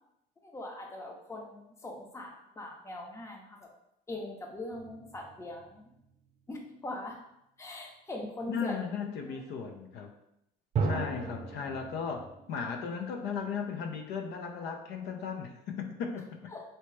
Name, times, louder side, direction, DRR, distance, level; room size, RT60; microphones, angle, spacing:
voice 1, 0.4-3.7 4.1-5.9 6.5-7.2 7.6-8.8 9.3-9.4 16.5-16.6, left 1 dB, 15° left, 1 dB, 0.6 m, -41 dB
sound 1, 4.7-6.0 10.7-12.6, right 4 dB, 40° right, 0.7 m, -35 dB
voice 2, 8.5-10.1 10.8-16.5, left 6 dB, 80° left, 4 dB, 0.5 m, -36 dB
3.3 x 2.8 x 3.1 m, 0.81 s
cardioid pair, 110°, 17 cm